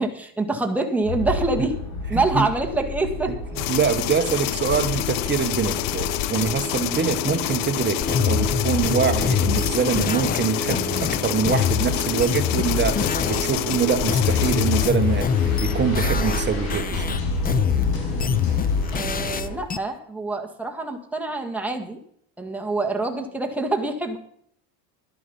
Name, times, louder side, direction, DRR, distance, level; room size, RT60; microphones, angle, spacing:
voice 1, 0.0-1.8 2.1-3.4 18.9-22.0 22.4-24.2, right 2 dB, 5° right, 2 dB, 1.8 m, -26 dB
sound 1, 1.0-19.6, left 1 dB, 85° left, 6.6 m, -31 dB
voice 2, 2.1-2.5 3.7-17.2, right 6 dB, 25° right, 7 dB, 1.3 m, -24 dB
sound 2, 3.6-14.9, left 16 dB, 65° left, 0.7 m, -28 dB
sound 3, 8.0-13.4 13.7-16.4 16.7-19.8, left 7 dB, 20° left, 0.6 m, -24 dB
12.0 x 11.0 x 5.4 m, 0.65 s
supercardioid pair, 120°, 45 cm